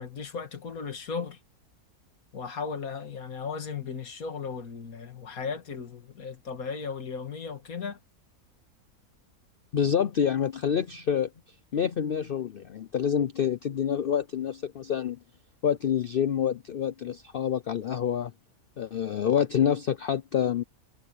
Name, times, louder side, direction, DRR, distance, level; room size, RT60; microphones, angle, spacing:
voice 1, 0.0-1.4 2.3-8.0, left 5 dB, 75° left, 2.4 m, -36 dB
voice 2, 9.7-11.3 11.7-15.2 15.6-18.3 18.8-20.6, left 8 dB, 55° left, 0.7 m, -27 dB
omnidirectional pair, 1.5 m